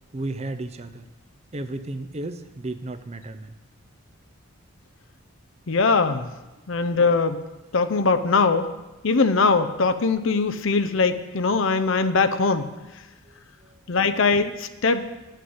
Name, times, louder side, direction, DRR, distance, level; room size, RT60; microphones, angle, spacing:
voice 1, 0.1-1.0 1.5-3.5 6.8-6.9 13.3-13.8, right 2 dB, 30° right, 10 dB, 0.6 m, -34 dB
voice 2, 5.7-6.3 6.7-7.4 7.7-8.7 9.0-12.7 13.9-15.1, left 4 dB, 60° left, 9 dB, 0.6 m, -21 dB
9.5 x 6.7 x 7.8 m, 1.1 s
head